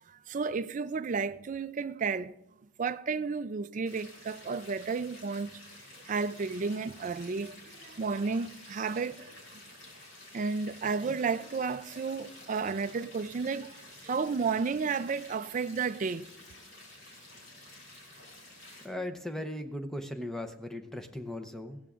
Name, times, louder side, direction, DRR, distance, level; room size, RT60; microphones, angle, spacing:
voice 1, 0.1-2.3 2.8-5.5 6.0-9.6 10.3-13.7 14.0-16.3, right 5 dB, 35° right, 0.4 m, -32 dB
sound 1, 3.9-18.8, left 1 dB, 80° left, 3.9 m, -51 dB
voice 2, 18.8-21.8, left 1 dB, ahead, 0.7 m, -38 dB
20.5 x 16.0 x 2.5 m
head